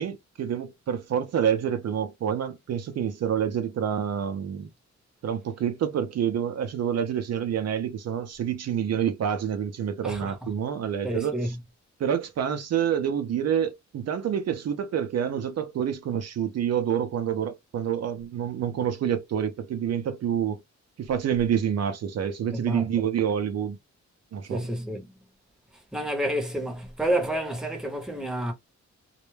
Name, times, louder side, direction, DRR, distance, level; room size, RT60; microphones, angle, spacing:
voice 1, 0.0-4.7 5.2-11.4 12.0-20.6 21.0-23.8 24.3-24.7, right 8 dB, 60° right, 0.5 m, -27 dB
voice 2, 10.0-10.5 11.0-11.5 22.5-22.9 24.5-25.1 25.9-28.5, right 1 dB, ahead, 0.7 m, -29 dB
2.2 x 2.1 x 3.1 m
wide cardioid pair, 120°, 29 cm